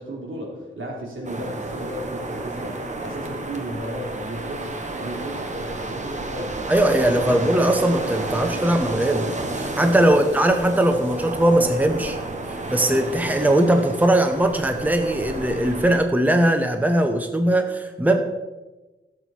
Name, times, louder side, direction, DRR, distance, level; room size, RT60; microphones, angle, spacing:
voice 1, 0.0-6.5 7.1-7.4 9.9-10.2, right 1 dB, 75° right, -1 dB, 3.2 m, -34 dB
sound 1, 1.2-16.0, right 2 dB, 35° right, 1.3 m, -31 dB
voice 2, 6.7-9.3 9.5-12.2 12.5-18.2, right 1 dB, 10° right, 6 dB, 0.8 m, -20 dB
15.5 x 7.6 x 4.4 m, 1.1 s
wide cardioid pair, 120°, 21 cm